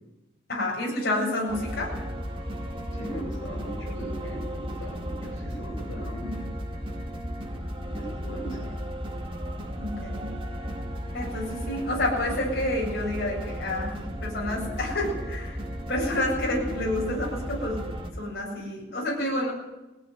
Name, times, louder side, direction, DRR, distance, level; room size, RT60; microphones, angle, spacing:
voice 1, 0.5-1.9 6.2-6.3 9.8-10.3 11.1-13.9 14.2-15.6 15.9-17.8 18.2-19.5, left 1 dB, 50° left, -3 dB, 7.6 m, -29 dB
sound 1, 1.5-18.1, equal, 25° right, 3.0 m, -34 dB
voice 2, 2.9-6.3 7.8-8.6, equal, 65° left, 0 dB, 7.6 m, -38 dB
20.5 x 16.5 x 9.4 m, 1.0 s
head